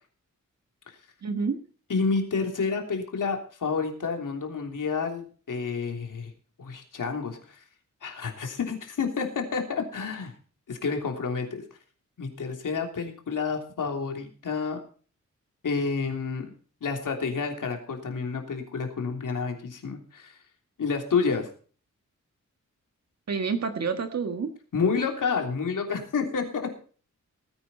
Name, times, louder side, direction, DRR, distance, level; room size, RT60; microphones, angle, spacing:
voice 1, 1.2-1.6 23.3-24.5, right 5 dB, 55° right, 6 dB, 1.5 m, -28 dB
voice 2, 1.9-6.3 6.6-7.6 8.0-10.3 10.7-11.6 12.2-14.8 15.6-16.5 16.8-20.4 20.8-21.5 24.7-26.8, left 5 dB, 85° left, 3 dB, 3.3 m, -29 dB
19.0 x 9.7 x 4.3 m, 0.41 s
wide cardioid pair, 125°, 31 cm